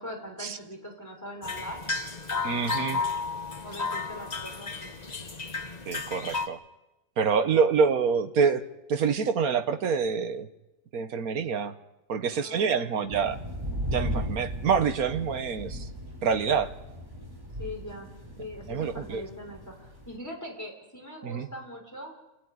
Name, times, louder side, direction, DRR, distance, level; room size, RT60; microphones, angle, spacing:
voice 1, 0.0-1.8 3.6-5.0 12.4-13.4 17.6-18.1 18.4-22.1, equal, 10° left, 2 dB, 4.4 m, -41 dB
sound 1, 1.4-6.5, left 4 dB, 30° left, 1.3 m, -33 dB
voice 2, 2.4-3.0 5.9-6.6 7.2-8.6 8.9-10.5 10.9-11.7 12.1-13.4 13.9-15.9 16.2-16.7 18.7-19.2 21.2-21.5, right 6 dB, 65° right, 9 dB, 1.7 m, -26 dB
sound 2, 13.1-20.2, equal, 15° right, 4.3 m, -36 dB
29.0 x 14.0 x 9.7 m, 0.98 s
omnidirectional pair, 1.7 m